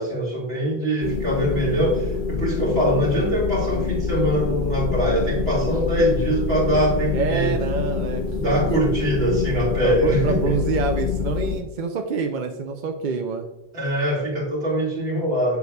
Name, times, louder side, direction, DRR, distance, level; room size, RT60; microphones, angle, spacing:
voice 1, 0.0-7.6 8.3-10.6 13.7-15.6, equal, 70° right, -4 dB, 2.2 m, -23 dB
sound 1, 1.0-11.6, left 5 dB, 60° left, 0.7 m, -26 dB
voice 2, 7.1-8.7 9.8-13.5, right 5 dB, 55° right, 5 dB, 0.6 m, -26 dB
6.9 x 6.5 x 2.3 m, 0.93 s
omnidirectional pair, 1.1 m